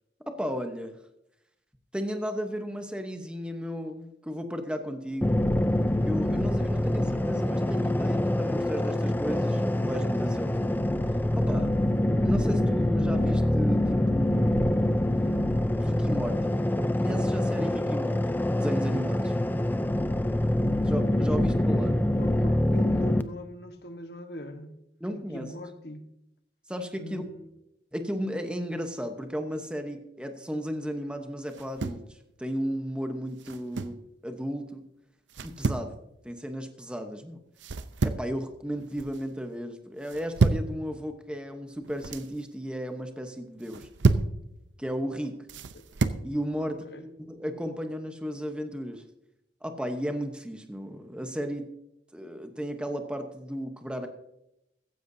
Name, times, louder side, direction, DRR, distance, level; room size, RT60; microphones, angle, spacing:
voice 1, 0.3-0.9 1.9-5.4 6.0-10.9 11.3-11.7 12.2-14.9 15.8-16.6 17.0-19.3 20.8-22.0 25.0-25.5 26.7-27.2 27.9-34.0 34.2-34.8 35.4-36.0 36.2-37.4 38.0-43.9 44.8-45.4 46.2-49.0 49.6-51.7 52.1-54.1, equal, 5° right, 6 dB, 0.9 m, -34 dB
sound 1, 5.2-23.2, left 1 dB, 10° left, 0.4 m, -25 dB
voice 2, 22.2-24.8 25.3-26.1 27.0-27.5 45.7-45.9 46.6-47.1, left 1 dB, 60° left, 7 dB, 1.2 m, -42 dB
sound 2, 31.5-32.1 33.4-34.0 35.3-35.9 37.6-38.3 38.7-39.2 40.0-40.7 41.8-42.3 43.6-44.4 45.5-46.2, right 3 dB, 85° right, 0.7 m, -28 dB
15.0 x 15.0 x 2.7 m, 0.84 s
head